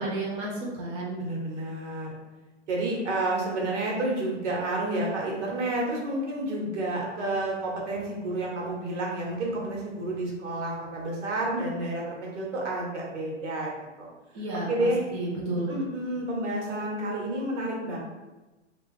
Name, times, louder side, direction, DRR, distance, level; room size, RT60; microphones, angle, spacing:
voice 1, 0.0-1.2 14.3-15.7, right 2 dB, 15° right, -4 dB, 0.4 m, -32 dB
voice 2, 1.2-2.1 2.7-14.1 14.7-15.0 15.7-18.0, right 1 dB, 70° right, -2 dB, 1.2 m, -30 dB
2.9 x 2.4 x 3.4 m, 1.1 s
hypercardioid pair, 145°, 37 cm